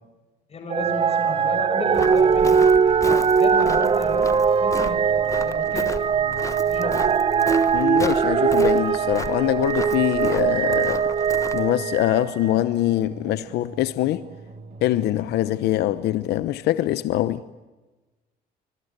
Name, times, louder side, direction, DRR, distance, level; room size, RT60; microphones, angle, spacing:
voice 1, 0.5-4.3 4.6-7.1, left 3 dB, 35° left, 5.4 m, -34 dB
sound 1, 0.7-12.7 13.3-13.4, right 6 dB, 35° right, 1.1 m, -21 dB
sound 2, 0.8-16.4, right 3 dB, 55° right, 3.2 m, -43 dB
Walk footsteps, 1.9-11.7, left 3 dB, 20° left, 1.3 m, -36 dB
voice 2, 7.7-11.1 11.5-14.2 14.8-17.4, left 14 dB, 80° left, 0.9 m, -23 dB
26.5 x 21.0 x 8.1 m
cardioid pair, 110°, 17 cm